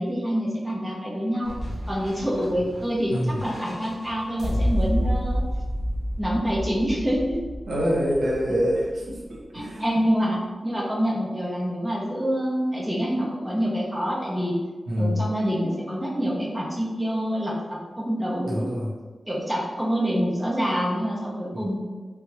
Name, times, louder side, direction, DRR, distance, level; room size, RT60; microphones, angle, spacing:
voice 1, 0.0-1.6 1.9-5.4 6.2-7.4 9.5-14.6 15.0-18.7 19.3-21.8, equal, ahead, -6 dB, 0.6 m, -26 dB
sound 1, 1.4-9.4, equal, 35° left, 0.9 m, -30 dB
voice 2, 3.1-3.4 7.7-9.8 14.9-15.3 18.4-18.9 21.5-21.6, equal, 65° right, -4 dB, 0.9 m, -26 dB
3.4 x 2.3 x 3.1 m, 1.3 s
wide cardioid pair, 155°, 0 cm